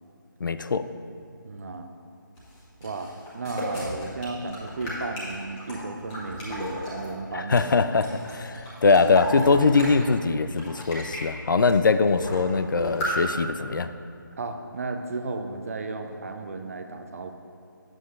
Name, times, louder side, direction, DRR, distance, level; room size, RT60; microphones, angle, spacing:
voice 1, 0.4-0.9 7.3-13.9, left 4 dB, 65° left, 11 dB, 0.4 m, -22 dB
voice 2, 1.4-1.9 2.8-7.7 14.4-17.3, right 3 dB, 45° right, 6 dB, 0.6 m, -34 dB
sound 1, 2.4-7.1 7.5-10.1 10.4-11.2 11.7-11.8 12.0-12.5 12.8-13.1, equal, 15° left, 1.2 m, -35 dB
9.2 x 7.6 x 2.5 m, 2.5 s
figure-of-eight pair, 155°, 11 cm